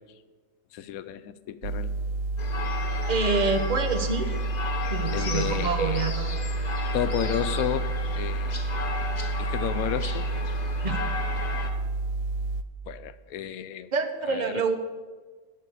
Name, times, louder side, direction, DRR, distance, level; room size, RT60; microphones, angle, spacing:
voice 1, 0.7-1.9 5.1-6.0 6.9-8.6 9.4-10.3 12.9-13.9 14.3-14.6, left 11 dB, 90° left, 13 dB, 1.1 m, -32 dB
sound 1, 1.6-12.6, right 3 dB, 85° right, 1.1 m, -29 dB
sound 2, 2.4-11.7, left 4 dB, 35° left, 1.1 m, -35 dB
voice 2, 3.1-4.4 4.9-6.4 10.8-11.0 13.9-14.7, right 4 dB, 35° right, 7 dB, 0.9 m, -27 dB
11.0 x 5.4 x 8.3 m, 1.4 s
omnidirectional pair, 1.5 m